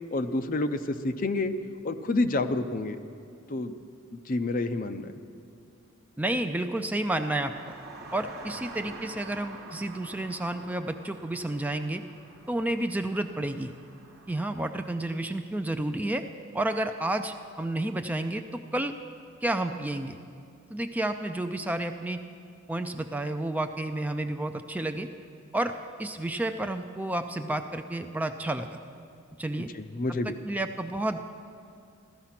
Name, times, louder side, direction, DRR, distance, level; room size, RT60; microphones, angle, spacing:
voice 1, 0.1-1.5 1.8-3.0 3.5-3.7 4.3-5.1 29.6-30.4, left 2 dB, 40° left, 9 dB, 0.6 m, -29 dB
voice 2, 6.2-7.8 8.1-12.0 12.5-13.7 14.3-16.2 16.5-18.9 19.4-20.2 20.7-22.2 22.7-25.1 25.5-25.7 26.0-28.8 29.4-29.7 30.5-31.2, right 1 dB, 10° right, 7 dB, 0.4 m, -30 dB
sound 1, 7.1-14.8, right 2 dB, 50° right, 1.4 m, -47 dB
15.5 x 12.5 x 5.8 m, 2.4 s
head